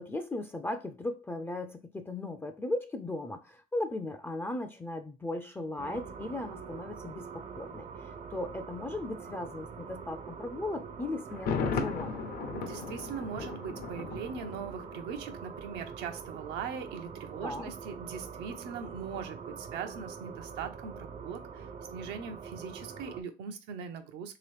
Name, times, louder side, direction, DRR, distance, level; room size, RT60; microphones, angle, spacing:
voice 1, 0.0-12.2 17.4-17.7, left 2 dB, 15° left, 0.3 m, -37 dB
sound 1, 5.8-23.2, right 6 dB, 45° right, 0.5 m, -44 dB
Thunder, 11.3-15.2 15.5-15.6, left 5 dB, 65° left, 0.7 m, -36 dB
voice 2, 12.5-24.4, right 6 dB, 90° right, 0.6 m, -40 dB
3.3 x 2.9 x 3.2 m
cardioid pair, 110°, 17 cm